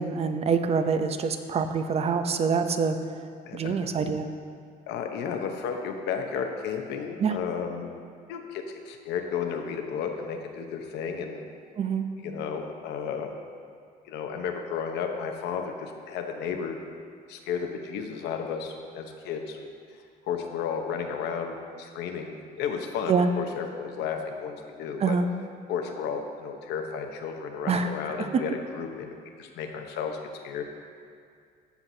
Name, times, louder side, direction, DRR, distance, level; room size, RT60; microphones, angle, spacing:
voice 1, 0.0-3.0 3.5-4.3 7.2-7.3 11.8-12.1 23.1-23.3 25.0-25.3 27.7-27.9, right 5 dB, 35° right, 8 dB, 0.6 m, -25 dB
voice 2, 3.5-3.8 4.9-7.9 8.3-11.4 12.2-13.3 14.0-16.8 17.3-19.7 20.3-25.2 25.7-30.2 30.4-30.6, left 6 dB, 80° left, 4 dB, 0.9 m, -33 dB
15.0 x 5.9 x 2.7 m, 2.2 s
cardioid pair, 110°, 17 cm